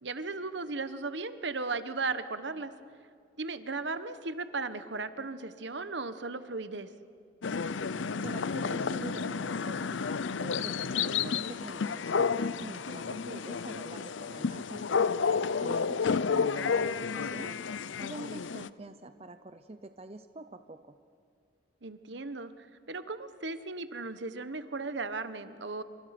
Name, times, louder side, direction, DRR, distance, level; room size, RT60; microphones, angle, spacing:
voice 1, 0.0-2.7 3.4-6.9 17.3-17.5 21.8-25.8, right 3 dB, 65° right, 11 dB, 1.3 m, -36 dB
sound 1, 7.4-18.7, left 5 dB, 75° left, 0.6 m, -31 dB
voice 2, 8.2-10.0 10.4-12.3 12.6-15.1 15.6-17.6 18.0-21.0, right 2 dB, 30° right, 9 dB, 0.7 m, -45 dB
28.5 x 25.5 x 6.0 m, 2.4 s
head